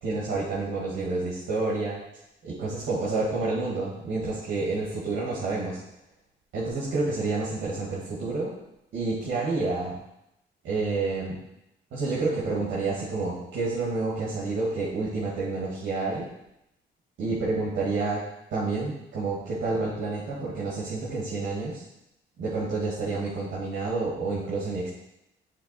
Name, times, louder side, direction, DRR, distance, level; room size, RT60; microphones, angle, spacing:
voice 1, 0.0-2.0 2.4-5.8 6.5-8.5 8.9-10.0 10.6-11.4 11.9-16.3 17.2-18.2 18.5-21.8 22.4-24.9, right 3 dB, 75° right, -7 dB, 1.8 m, -29 dB
6.7 x 3.8 x 4.1 m, 0.83 s
cardioid pair, 90°, 20 cm